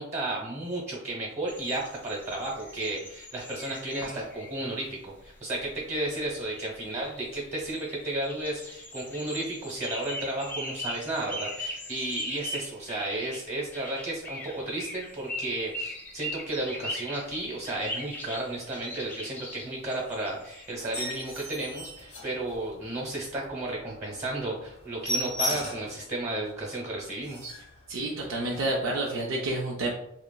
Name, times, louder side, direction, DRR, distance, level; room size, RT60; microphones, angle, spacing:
voice 1, 0.0-27.5, right 2 dB, 35° right, -2 dB, 0.9 m, -33 dB
sound 1, 1.5-4.6 5.3-5.4 5.6-5.7 6.0-20.8, equal, 10° left, 0.4 m, -40 dB
sound 2, 20.8-22.9 23.3-23.5 23.9-24.0 24.3-24.4 24.6-26.0 26.5-26.6 26.9-27.0 27.2-27.7 28.5-28.6, left 1 dB, 80° left, 1.0 m, -34 dB
voice 2, 27.9-29.9, right 2 dB, 70° right, -1 dB, 0.4 m, -29 dB
2.9 x 2.4 x 2.2 m, 0.77 s
head